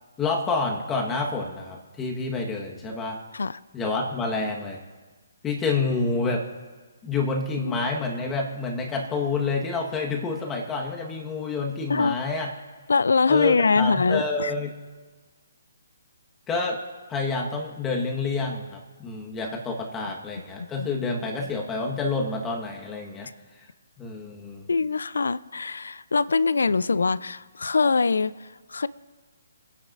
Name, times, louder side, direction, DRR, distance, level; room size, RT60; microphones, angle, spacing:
voice 1, 0.2-3.2 3.7-4.8 5.4-6.4 7.0-12.5 13.3-14.7 16.5-16.8 17.1-23.3 24.0-24.6, left 3 dB, 15° left, 0 dB, 1.4 m, -28 dB
voice 2, 11.9-12.2 12.9-14.5 20.8-20.9 24.7-28.9, left 4 dB, 80° left, 18 dB, 0.4 m, -23 dB
26.0 x 10.0 x 2.6 m, 1.4 s
hypercardioid pair, 145°, 0 cm